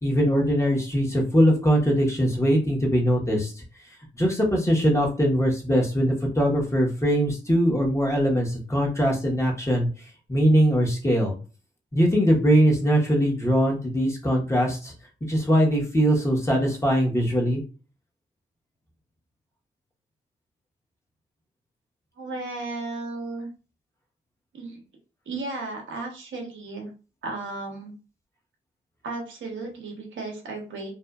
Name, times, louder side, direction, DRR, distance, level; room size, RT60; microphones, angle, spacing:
voice 1, 0.0-3.6 4.2-9.9 10.3-11.3 11.9-14.9 15.3-17.6, equal, 15° left, -1 dB, 1.1 m, -21 dB
voice 2, 22.2-23.5 24.5-24.8 25.3-26.9 27.2-27.9 29.0-30.9, right 3 dB, 80° right, 1 dB, 0.9 m, -34 dB
2.6 x 2.4 x 2.3 m, 0.35 s
cardioid pair, 50°, 20 cm